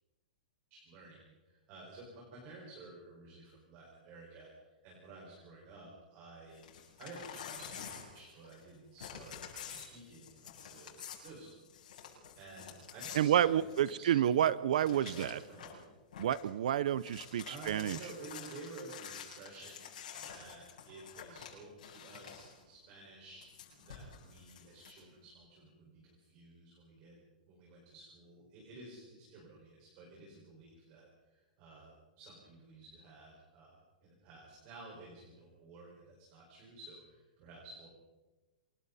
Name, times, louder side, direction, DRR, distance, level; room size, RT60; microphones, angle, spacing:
voice 1, 0.7-6.7 7.0-11.5 11.9-14.4 14.7-15.9 17.5-27.2 27.5-37.9, right 3 dB, 30° right, -2 dB, 5.3 m, -53 dB
Crumpling crinkling / Tearing, 6.5-8.7 9.0-14.1 14.4-14.5 14.8-15.8 16.1-16.5 16.8-22.6 23.4-25.0, left 8 dB, 65° left, 8.0 m, -49 dB
voice 2, 13.1-15.4 16.2-18.0, right 10 dB, 55° right, 18 dB, 0.6 m, -29 dB
28.0 x 22.5 x 4.2 m, 1.2 s
hypercardioid pair, 175°, 5 cm